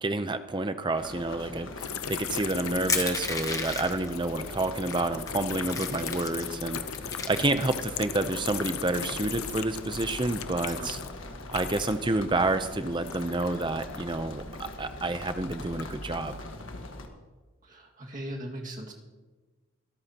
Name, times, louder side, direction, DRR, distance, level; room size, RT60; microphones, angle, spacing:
voice 1, 0.0-6.8 7.3-11.0 11.5-14.4 14.8-16.4, right 2 dB, 20° right, 10 dB, 0.6 m, -29 dB
sound 1, 1.0-17.1, left 1 dB, 65° left, 1.5 m, -42 dB
sound 2, 1.8-12.1 12.4-14.9 15.4-16.3, left 8 dB, 85° left, 0.7 m, -38 dB
Crushing, 2.9-4.1 4.9-5.0 5.3-6.5 6.9-8.0, left 4 dB, 15° left, 0.9 m, -32 dB
voice 2, 17.6-18.9, right 1 dB, 35° right, -1 dB, 2.0 m, -39 dB
24.0 x 13.5 x 2.9 m, 1.3 s
head